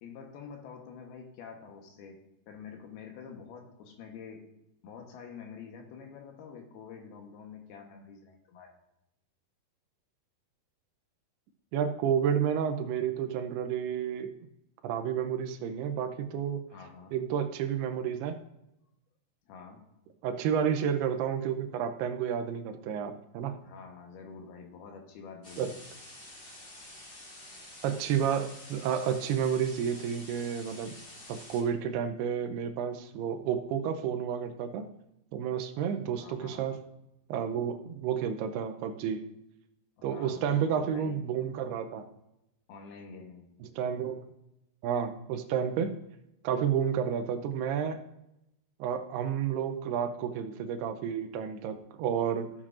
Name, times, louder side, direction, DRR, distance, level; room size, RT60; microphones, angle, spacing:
voice 1, 0.0-4.4 4.8-8.7 16.7-17.2 19.5-19.8 23.6-25.8 36.2-36.7 40.0-41.3 42.7-43.5, left 6 dB, 75° left, 3 dB, 2.9 m, -47 dB
voice 2, 11.7-14.3 14.8-16.6 17.1-18.4 20.2-23.6 25.6-25.7 27.8-30.9 31.3-34.9 35.3-36.8 37.3-39.2 40.0-42.1 43.8-44.2 44.8-46.0 46.4-48.0 48.8-52.5, right 8 dB, 80° right, 8 dB, 2.6 m, -31 dB
sound 1, 25.4-31.6, left 1 dB, 35° left, 2.8 m, -49 dB
14.5 x 7.3 x 2.5 m, 0.86 s
omnidirectional pair, 4.7 m